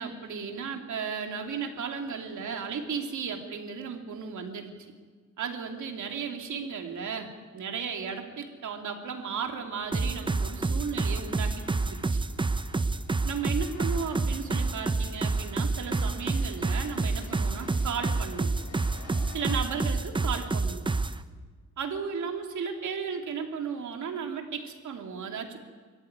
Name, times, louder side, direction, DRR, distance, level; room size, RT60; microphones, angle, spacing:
voice 1, 0.0-4.7 5.4-12.2 13.2-18.5 19.3-20.9 21.8-25.6, right 6 dB, 75° right, 3 dB, 3.0 m, -35 dB
sound 1, 9.5-19.6, left 4 dB, 85° left, 3.5 m, -51 dB
sound 2, 9.9-21.2, right 3 dB, 15° right, 0.7 m, -28 dB
24.5 x 14.5 x 9.6 m, 1.5 s
cardioid pair, 125°, 30 cm